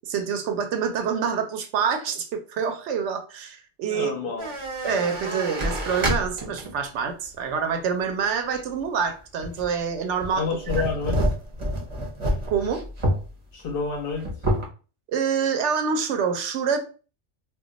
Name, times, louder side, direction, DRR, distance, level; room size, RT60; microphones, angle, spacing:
voice 1, 0.1-4.3 4.8-10.4 12.5-12.8 15.1-16.8, right 6 dB, 75° right, 6 dB, 0.8 m, -26 dB
voice 2, 3.9-4.5 10.4-11.2 13.5-14.3, left 4 dB, 60° left, 3 dB, 0.6 m, -29 dB
sound 1, 4.4-6.8 7.3-7.4 9.4-9.8 10.2-13.3 13.6-13.7 14.0-14.7, right 1 dB, 30° right, 0.6 m, -27 dB
2.3 x 2.2 x 3.8 m, 0.36 s
omnidirectional pair, 1.2 m